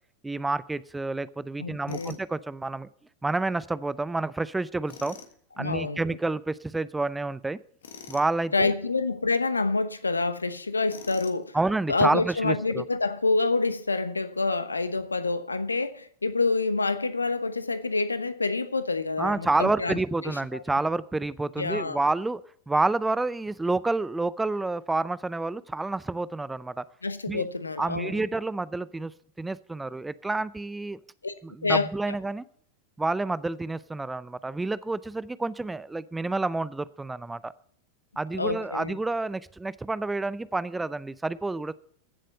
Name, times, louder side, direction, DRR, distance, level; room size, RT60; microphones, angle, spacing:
voice 1, 0.2-2.9 3.2-5.2 5.6-7.6 8.1-8.7 11.5-12.9 19.2-22.4 22.7-26.8 27.3-27.5 27.8-29.1 29.4-31.0 31.4-32.4 33.0-37.5 38.2-41.7, right 2 dB, 10° right, 0.5 m, -29 dB
voice 2, 1.6-2.2 5.6-6.0 8.5-11.6 11.9-20.0 20.2-20.3 21.6-22.0 27.0-28.2 31.2-31.3 31.6-31.9 38.3-39.0, left 3 dB, 80° left, 1.0 m, -27 dB
Tools, 1.9-2.2 4.9-5.3 7.8-8.3 10.9-11.5, left 6 dB, 65° left, 1.7 m, -45 dB
15.0 x 7.5 x 6.6 m
figure-of-eight pair, 90°, 0 cm